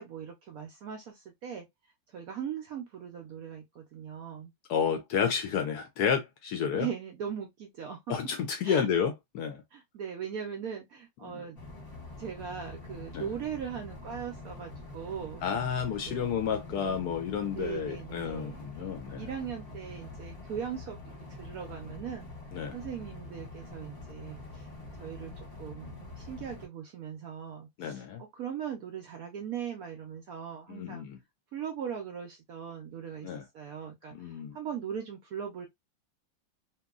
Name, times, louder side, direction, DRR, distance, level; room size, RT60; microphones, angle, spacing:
voice 1, 0.0-1.7 2.1-4.5 6.7-8.0 8.6-8.9 9.7-11.6 12.2-15.4 15.9-16.3 16.7-17.0 17.5-18.6 19.2-21.0 21.4-22.3 22.7-24.7 25.0-25.3 25.6-31.0 31.5-35.7, right 8 dB, 75° right, 0.8 m, -39 dB
voice 2, 4.7-6.9 8.1-9.6 11.2-11.4 13.1-13.3 15.4-19.3 22.5-22.8 27.8-28.2 30.7-31.2 33.2-33.4 34.1-34.6, left 7 dB, 75° left, 0.9 m, -31 dB
sound 1, 11.6-26.7, left 2 dB, 40° left, 1.0 m, -45 dB
2.9 x 2.6 x 2.3 m
omnidirectional pair, 2.0 m